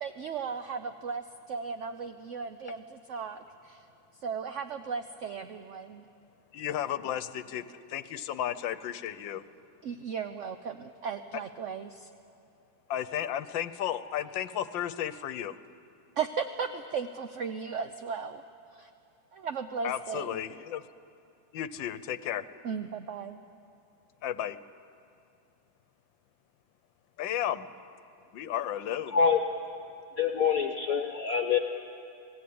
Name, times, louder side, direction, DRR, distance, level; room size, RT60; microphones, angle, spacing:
voice 1, 0.0-3.8 4.2-6.0 9.8-12.1 16.2-18.4 18.7-18.9 19.3-20.4 22.6-23.4, right 6 dB, 60° right, 8 dB, 0.8 m, -36 dB
voice 2, 6.5-9.4 12.9-15.6 19.8-20.8 21.5-22.4 24.2-24.6 27.2-27.7 28.3-29.2, left 11 dB, 80° left, 14 dB, 1.5 m, -33 dB
voice 3, 30.2-31.6, left 6 dB, 55° left, 5 dB, 1.4 m, -25 dB
27.5 x 19.0 x 8.6 m, 2.6 s
omnidirectional pair, 2.1 m